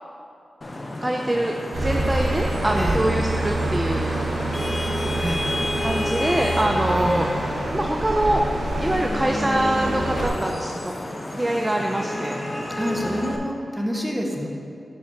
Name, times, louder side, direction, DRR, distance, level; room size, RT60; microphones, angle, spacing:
Vehicle horn car horn honking / Traffic noise roadway noise, 0.6-13.4, left 1 dB, 35° left, 0.7 m, -31 dB
voice 1, 1.0-4.1 5.8-7.3 7.7-8.4 8.8-10.9 11.3-12.4, right 1 dB, 15° right, 1 dB, 0.4 m, -24 dB
sound 1, 1.7-10.3, right 2 dB, 75° right, 1.6 m, -26 dB
voice 2, 5.2-5.5 6.9-7.3 12.8-14.5, equal, ahead, -1 dB, 1.0 m, -28 dB
5.1 x 5.1 x 5.8 m, 2.5 s
cardioid pair, 70°, 0 cm